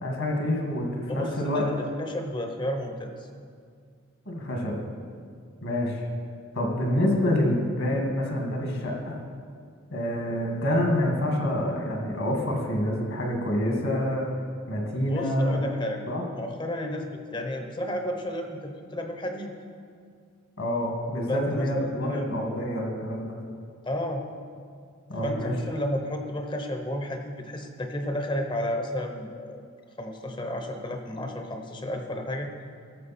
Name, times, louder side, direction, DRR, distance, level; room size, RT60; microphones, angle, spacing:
voice 1, 0.0-1.7 4.3-4.8 5.6-6.0 6.5-9.2 9.9-14.3 14.7-15.6 16.1-16.2 20.6-23.3 25.1-25.5, left 1 dB, 65° left, 1 dB, 1.7 m, -27 dB
voice 2, 1.1-3.3 15.1-16.0 16.3-19.5 21.3-22.3 23.8-24.2 25.2-29.6 30.0-32.5, left 1 dB, 20° left, 4 dB, 0.7 m, -32 dB
14.0 x 6.5 x 4.2 m, 2.1 s
head